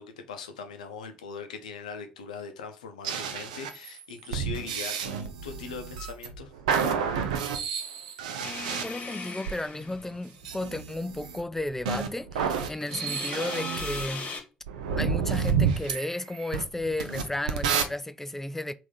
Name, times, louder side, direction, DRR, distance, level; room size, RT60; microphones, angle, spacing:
voice 1, 0.0-6.5, left 5 dB, 80° left, 0.5 m, -40 dB
sound 1, 3.0-9.6 10.4-14.1 14.7-17.8, right 6 dB, 75° right, 0.4 m, -30 dB
sound 2, 8.4-10.5 12.8-14.4, left 4 dB, 40° left, 1.1 m, -38 dB
voice 2, 8.8-14.3 14.9-18.7, left 1 dB, 10° left, 0.3 m, -33 dB
3.5 x 2.5 x 3.8 m
figure-of-eight pair, 45°, 4 cm